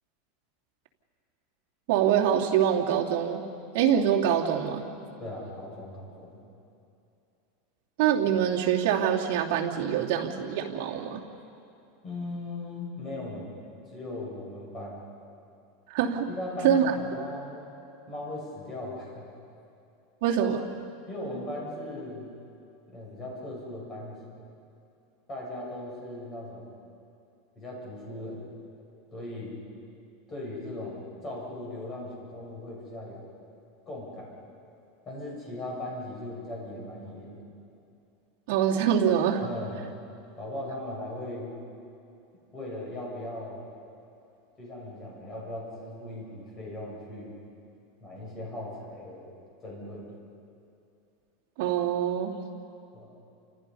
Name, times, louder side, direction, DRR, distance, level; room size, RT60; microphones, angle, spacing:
voice 1, 1.9-3.4 3.7-4.8 8.0-11.2 15.9-16.3 16.6-16.8 20.2-20.7 38.5-39.4 51.6-52.3, right 9 dB, 55° right, -3 dB, 2.8 m, -24 dB
voice 2, 5.2-6.4 12.0-13.5 13.9-15.0 16.3-17.7 18.1-19.3 21.1-22.3 22.9-24.4 25.3-26.7 27.6-28.5 29.1-29.5 30.3-33.3 33.9-34.3 35.0-37.4 39.4-39.8 40.4-41.5 42.5-43.6 44.6-47.3 48.0-49.3 49.6-50.1 52.9-53.1, left 1 dB, 20° left, -4 dB, 7.5 m, -38 dB
29.5 x 28.0 x 5.6 m, 2.7 s
supercardioid pair, 170°, 0 cm